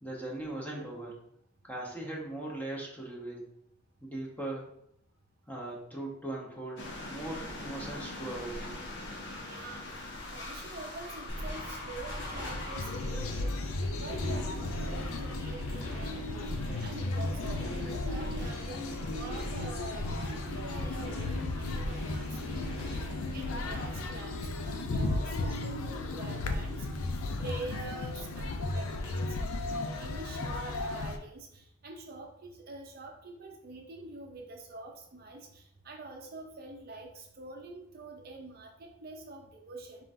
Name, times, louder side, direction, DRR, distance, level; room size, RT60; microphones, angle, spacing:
voice 1, 0.0-1.2 1.6-3.5 4.0-4.6 5.5-8.8, right 2 dB, 10° left, -3 dB, 0.8 m, -39 dB
sound 1, 6.8-13.7, left 2 dB, 55° left, 0.8 m, -42 dB
voice 2, 9.4-10.0 10.3-13.5 13.9-16.5 16.8-29.4 29.6-40.0, right 2 dB, 45° right, 1 dB, 0.6 m, -45 dB
sound 2, 11.3-24.1, equal, 30° left, 1.3 m, -41 dB
sound 3, 12.7-31.2, left 2 dB, 75° left, 0.5 m, -35 dB
4.3 x 3.8 x 2.6 m, 0.74 s
head